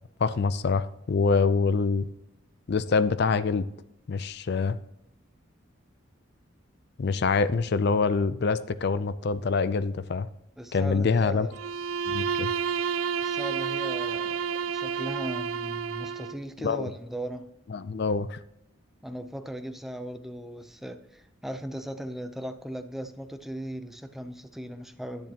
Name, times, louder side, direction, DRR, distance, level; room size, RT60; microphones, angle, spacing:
voice 1, 0.2-2.0 2.7-3.7 4.1-4.8 7.0-10.3 10.7-11.5 12.1-12.5 16.6-16.9 17.7-18.4, left 4 dB, 50° left, 15 dB, 0.4 m, -25 dB
voice 2, 10.6-11.6 13.2-17.5 19.0-25.3, right 1 dB, ahead, 8 dB, 0.5 m, -38 dB
Bowed string instrument, 11.5-16.4, right 6 dB, 75° right, 0.4 m, -30 dB
10.5 x 9.7 x 2.9 m, 0.82 s
head